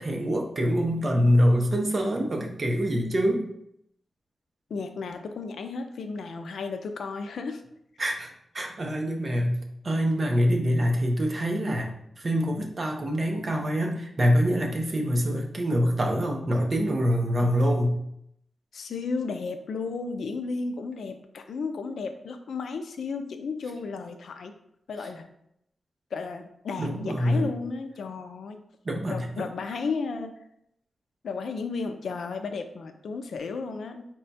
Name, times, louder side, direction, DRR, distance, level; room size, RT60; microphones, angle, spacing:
voice 1, 0.0-3.5 8.0-8.3 8.5-11.9 12.2-17.9 26.8-27.4 28.9-29.5, equal, 35° right, 2 dB, 0.6 m, -25 dB
voice 2, 4.7-7.6 17.4-17.6 18.7-24.5 24.9-25.3 26.1-28.6 29.1-30.4 31.2-34.1, left 4 dB, 75° left, 7 dB, 0.4 m, -33 dB
4.2 x 2.3 x 4.0 m, 0.74 s
wide cardioid pair, 160°, 0 cm